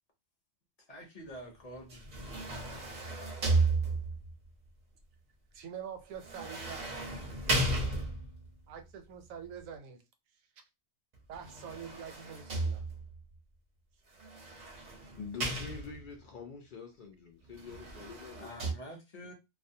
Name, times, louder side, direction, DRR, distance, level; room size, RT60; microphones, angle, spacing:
voice 1, 0.9-2.0 18.4-19.3, equal, 40° left, 0.6 m, -47 dB
sound 1, 1.9-4.3 6.2-8.5 11.3-13.2 14.2-16.2 17.5-18.7, right 2 dB, 45° right, 0.6 m, -34 dB
voice 2, 5.5-7.1 8.7-10.0 11.3-12.9, right 8 dB, 80° right, 1.0 m, -45 dB
voice 3, 15.2-18.5, left 5 dB, 80° left, 0.4 m, -45 dB
2.4 x 2.1 x 2.7 m
omnidirectional pair, 1.4 m